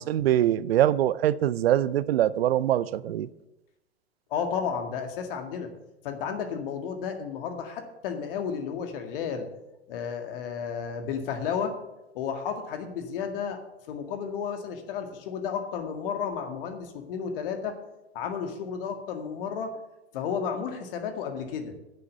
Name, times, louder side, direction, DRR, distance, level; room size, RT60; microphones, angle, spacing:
voice 1, 0.0-3.3, right 12 dB, 65° right, 18 dB, 0.6 m, -23 dB
voice 2, 4.3-5.7 6.0-9.5 9.9-11.8 12.1-13.6 13.9-17.8 18.1-19.7 20.1-21.7, left 7 dB, 55° left, 6 dB, 2.0 m, -32 dB
9.7 x 6.9 x 8.1 m, 0.97 s
figure-of-eight pair, 100°, 33 cm